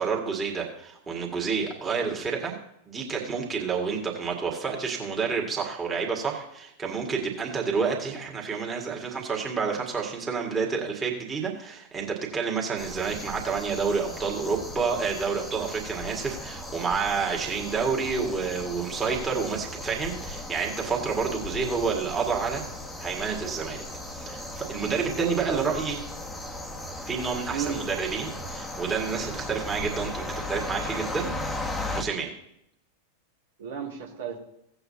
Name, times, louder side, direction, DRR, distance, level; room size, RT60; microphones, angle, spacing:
voice 1, 0.0-2.5 2.9-22.6 23.0-23.9 24.1-26.0 27.1-31.3 31.9-32.3, right 5 dB, 15° right, -1 dB, 2.0 m, -29 dB
sound 1, 12.8-32.0, left 1 dB, 10° left, 1.2 m, -37 dB
voice 2, 24.9-25.7 27.5-27.9 33.6-34.4, right 7 dB, 60° right, 0 dB, 1.8 m, -34 dB
17.0 x 7.9 x 2.8 m, 0.78 s
figure-of-eight pair, 90°, 0 cm